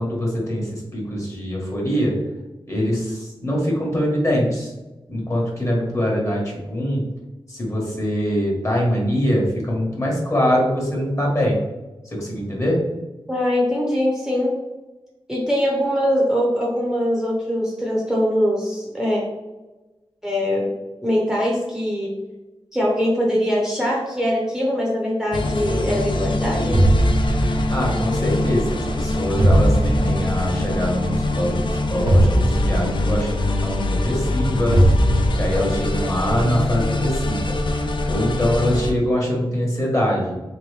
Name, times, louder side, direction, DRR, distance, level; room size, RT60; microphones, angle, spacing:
voice 1, 0.0-2.1 2.7-4.7 5.1-7.0 7.5-11.6 12.1-12.8 27.7-34.9 35.3-37.5 38.0-40.3, equal, 30° left, -2 dB, 1.3 m, -23 dB
voice 2, 13.3-14.5 15.3-19.2 20.2-20.7 21.0-22.1 22.7-26.8, equal, 5° right, -4 dB, 0.7 m, -22 dB
sound 1, 25.3-38.9, left 2 dB, 55° left, 0.4 m, -23 dB
sound 2, 26.7-27.9 29.4-30.3 32.1-33.1 34.7-35.7, right 1 dB, 85° right, 0.8 m, -17 dB
3.6 x 3.0 x 3.3 m, 1.1 s
wide cardioid pair, 105°, 10 cm